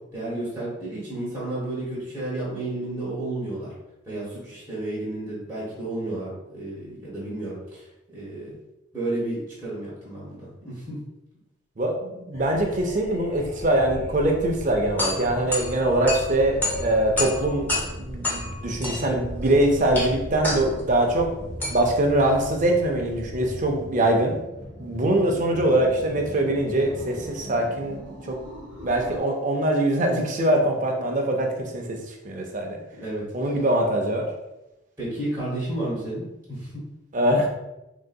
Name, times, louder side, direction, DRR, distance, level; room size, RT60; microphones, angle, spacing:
voice 1, 0.1-3.7 4.1-7.9 8.1-8.5 8.9-11.0 32.9-33.5 35.0-36.7, right 1 dB, 15° right, -9 dB, 1.0 m, -32 dB
voice 2, 11.8-17.7 18.0-21.3 21.7-24.4 24.8-28.1 28.8-31.8 32.2-32.8 33.3-34.3 37.1-37.5, right 1 dB, 40° right, 2 dB, 0.5 m, -23 dB
sound 1, 12.3-29.2, equal, 65° left, 1.0 m, -38 dB
sound 2, 14.6-23.6, left 2 dB, 10° left, 0.6 m, -31 dB
3.8 x 2.6 x 2.2 m, 0.96 s
head